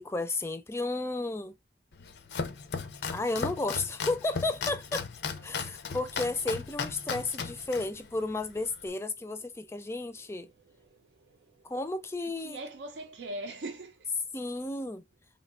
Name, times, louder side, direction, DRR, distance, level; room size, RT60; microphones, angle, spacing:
voice 1, 0.0-1.5 3.1-5.1 5.4-10.5 11.6-12.6 14.3-15.0, left 2 dB, 15° left, 0.3 m, -33 dB
Domestic sounds home sounds, 1.9-8.9, left 5 dB, 70° left, 0.5 m, -37 dB
voice 2, 9.9-11.7 12.4-14.2, right 2 dB, 80° right, 0.5 m, -43 dB
3.3 x 2.6 x 2.3 m
head